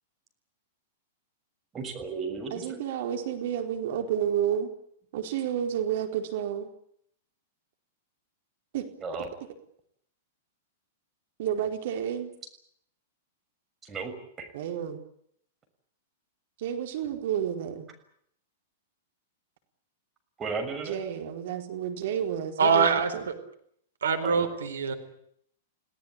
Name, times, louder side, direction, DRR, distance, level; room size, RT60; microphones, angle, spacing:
voice 1, 1.7-2.8 9.0-9.3 13.8-14.5 20.4-21.0 24.2-24.5, right 4 dB, 20° right, 4 dB, 6.7 m, -35 dB
voice 2, 2.5-4.7 5.1-6.7 8.7-8.9 11.4-12.3 14.5-15.0 16.6-17.9 20.9-22.9 23.1-23.2, right 9 dB, 60° right, 5 dB, 4.5 m, -30 dB
voice 3, 22.6-23.4 24.0-24.9, right 5 dB, 75° right, 8 dB, 4.2 m, -24 dB
29.5 x 18.5 x 8.8 m, 0.70 s
hypercardioid pair, 105°, 0 cm